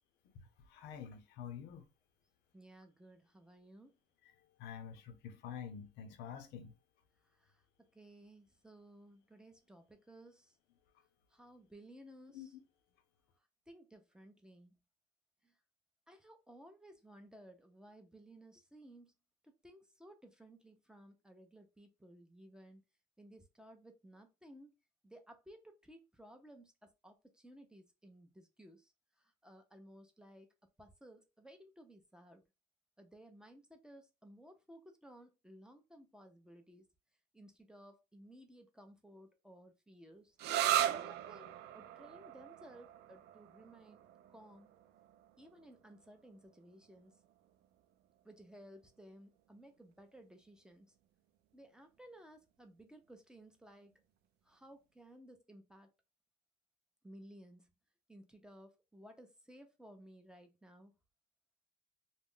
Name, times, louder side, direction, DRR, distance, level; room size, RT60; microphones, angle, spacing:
voice 1, 0.7-1.8 4.6-6.7 12.3-12.5, left 8 dB, 85° left, 0.6 m, -47 dB
voice 2, 2.5-3.9 7.2-10.6 11.3-12.6 13.7-14.8 15.4-15.6 16.1-19.1 19.4-22.8 23.2-24.7 25.0-28.9 29.2-30.5 30.8-32.4 33.0-36.9 37.3-40.4 40.8-44.0 44.3-44.7 45.4-47.1 48.2-50.9 51.5-53.9 54.4-55.9 57.0-57.7 58.1-60.9, right 1 dB, 5° right, 0.6 m, -58 dB
sound 1, 40.4-47.8, right 12 dB, 75° right, 0.4 m, -39 dB
2.3 x 2.0 x 3.6 m
cardioid pair, 110°, 17 cm